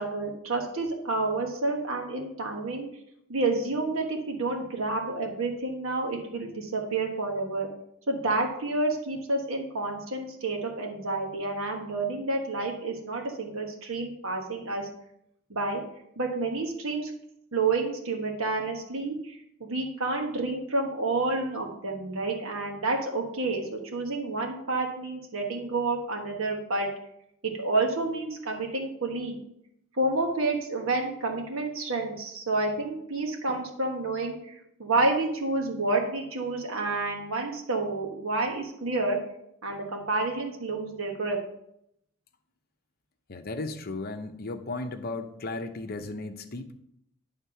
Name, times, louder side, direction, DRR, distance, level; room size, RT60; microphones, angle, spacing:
voice 1, 0.0-2.9 3.3-7.7 8.1-14.9 15.5-15.8 16.2-17.1 17.5-26.9 27.4-29.4 30.0-39.2 39.6-41.4, right 3 dB, 65° right, 2 dB, 1.4 m, -29 dB
voice 2, 43.3-46.7, left 2 dB, 45° left, 6 dB, 0.7 m, -35 dB
11.0 x 3.6 x 5.7 m, 0.76 s
head